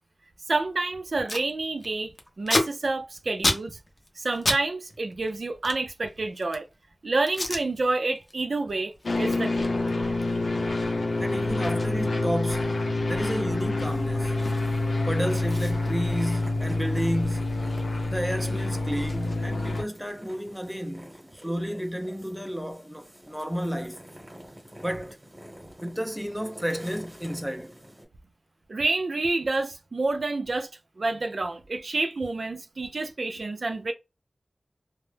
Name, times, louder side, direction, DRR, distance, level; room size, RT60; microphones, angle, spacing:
voice 1, 0.5-3.8 4.2-6.7 7.0-8.9 9.2-9.7 28.7-30.7 31.0-33.9, right 3 dB, 70° right, 0.4 m, -28 dB
Packing tape duct tape, 0.7-0.8 1.0-1.5 1.8-4.6 4.9-6.7 7.3-7.6 8.1-8.3 8.7-14.9 15.1-15.2 15.5-17.9 18.1-20.1, left 1 dB, 45° left, 0.6 m, -33 dB
sound 1, 9.0-19.8, left 2 dB, 90° left, 0.5 m, -27 dB
voice 2, 11.2-12.8 13.1-14.4 15.1-17.6 18.1-24.0 24.8-25.2 25.8-27.8, equal, 5° right, 0.4 m, -32 dB
sound 2, 13.8-28.0, equal, 20° right, 1.0 m, -48 dB
2.1 x 2.0 x 3.2 m
wide cardioid pair, 75°, 0 cm